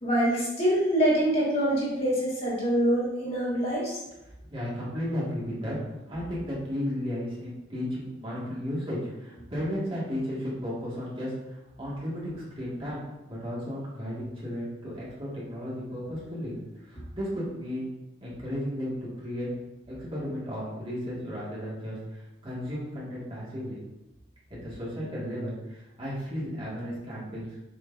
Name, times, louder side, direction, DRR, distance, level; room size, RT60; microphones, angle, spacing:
voice 1, 0.0-4.0, right 1 dB, 30° left, -7 dB, 2.1 m, -25 dB
voice 2, 4.5-5.8 6.1-13.0 13.3-16.5 16.8-17.9 18.2-19.5 19.9-23.8 24.5-27.5, equal, 25° right, -8 dB, 2.1 m, -34 dB
6.7 x 6.1 x 2.8 m, 0.96 s
head